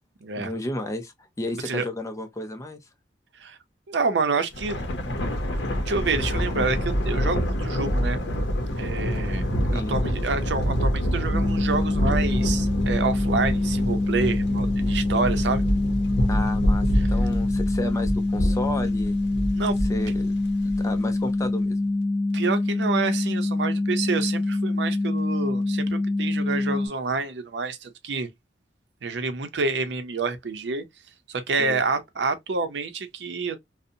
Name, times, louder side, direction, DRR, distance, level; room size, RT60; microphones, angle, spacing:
voice 1, 0.4-2.8 9.7-10.0 16.3-19.2 19.9-20.3 20.8-21.8 31.6-31.8, left 1 dB, 20° left, 0.4 m, -32 dB
voice 2, 3.9-4.8 5.9-8.2 8.8-9.4 9.7-15.6 17.0-17.1 19.5-19.8 22.3-28.3 29.0-30.8 31.3-33.6, right 4 dB, 85° right, 0.5 m, -28 dB
Thunder, 4.5-21.1, equal, 85° left, 0.6 m, -26 dB
sound 1, 11.3-26.9, left 2 dB, 35° left, 1.0 m, -25 dB
2.6 x 2.0 x 2.5 m
head